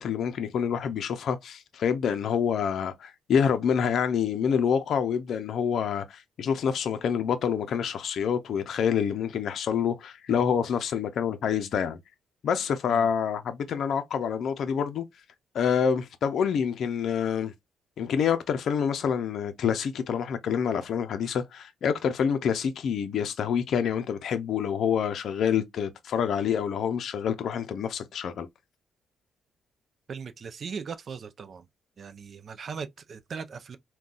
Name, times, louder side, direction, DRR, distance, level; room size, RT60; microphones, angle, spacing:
voice 1, 0.0-12.0 12.4-15.0 15.5-17.5 18.0-28.5, left 7 dB, 65° left, 0.5 m, -27 dB
voice 2, 30.1-31.7 32.0-33.8, right 6 dB, 50° right, 0.4 m, -39 dB
3.7 x 2.2 x 2.3 m
cardioid pair, 90°, 0 cm